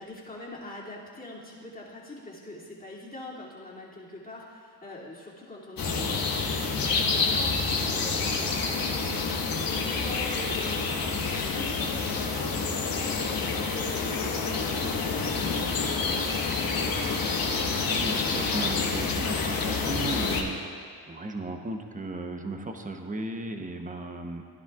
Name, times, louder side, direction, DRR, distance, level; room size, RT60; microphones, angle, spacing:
voice 1, 0.0-17.3, left 1 dB, 20° left, -5 dB, 2.7 m, -43 dB
sound 1, 5.8-20.4, left 4 dB, 60° left, 1.4 m, -28 dB
voice 2, 17.7-20.6 21.1-24.4, right 2 dB, 20° right, 5 dB, 0.9 m, -35 dB
16.0 x 10.5 x 2.4 m, 2.1 s
cardioid pair, 80°, 40 cm